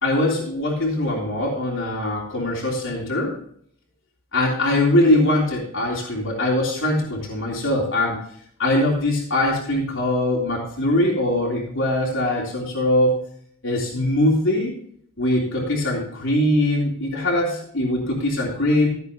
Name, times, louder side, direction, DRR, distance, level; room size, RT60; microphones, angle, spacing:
voice 1, 0.0-3.4 4.3-8.2 8.6-13.2 13.6-14.7 15.2-18.9, left 1 dB, 60° left, -4 dB, 3.5 m, -22 dB
15.0 x 8.0 x 3.0 m, 0.65 s
head